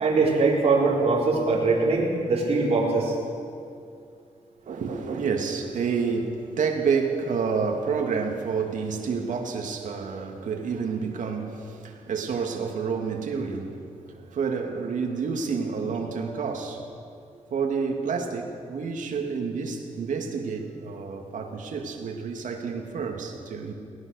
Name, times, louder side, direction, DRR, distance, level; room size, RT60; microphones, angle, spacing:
voice 1, 0.0-3.2, right 3 dB, 50° right, -4 dB, 4.5 m, -22 dB
voice 2, 4.7-16.9 17.5-23.7, right 5 dB, 80° right, 2 dB, 2.4 m, -29 dB
22.5 x 18.0 x 6.6 m, 2.3 s
wide cardioid pair, 120°, 13 cm